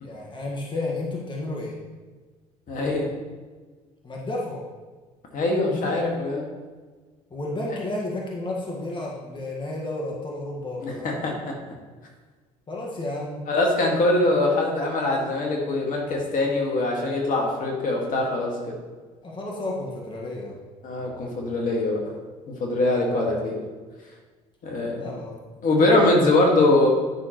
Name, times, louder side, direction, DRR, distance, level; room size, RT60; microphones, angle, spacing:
voice 1, 0.0-1.7 4.0-4.6 5.7-6.0 7.3-11.1 12.7-13.4 19.2-20.6 25.0-25.4, left 2 dB, 30° left, -2 dB, 1.7 m, -32 dB
voice 2, 2.7-3.1 5.3-6.5 10.8-11.5 13.5-18.5 20.8-22.0 22.5-23.6 24.6-25.1 25.6-26.9, left 2 dB, 55° left, -1 dB, 2.0 m, -22 dB
10.5 x 6.0 x 3.1 m, 1.4 s
supercardioid pair, 70°, 16 cm